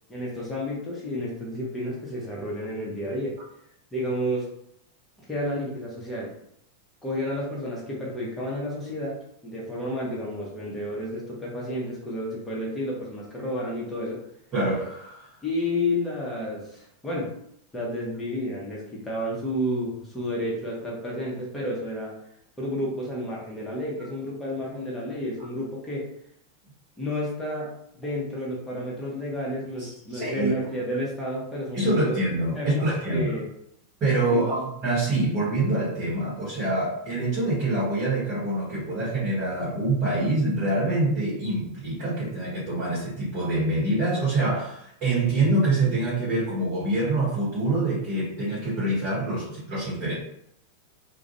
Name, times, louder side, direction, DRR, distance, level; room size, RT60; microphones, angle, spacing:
voice 1, 0.1-3.4 3.9-4.5 5.3-6.3 7.0-14.2 15.4-17.3 17.7-22.1 22.6-26.1 27.0-27.7 28.0-32.2 32.5-33.5 34.3-34.6, left 1 dB, 10° left, -5 dB, 0.9 m, -31 dB
voice 2, 14.5-15.3 29.8-30.5 31.7-33.3 34.0-50.1, right 2 dB, 35° right, -8 dB, 1.1 m, -25 dB
2.4 x 2.2 x 2.7 m, 0.74 s
figure-of-eight pair, 90°, 0 cm